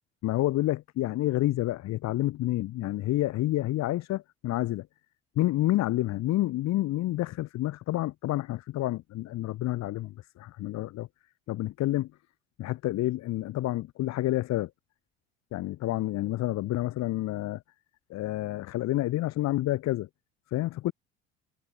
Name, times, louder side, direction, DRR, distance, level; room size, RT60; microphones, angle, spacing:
voice 1, 0.2-4.9 5.4-11.1 11.5-12.1 12.6-14.7 15.5-17.6 18.1-20.1 20.5-20.9, left 16 dB, 55° left, 2.0 m, -29 dB
hypercardioid pair, 60°, 32 cm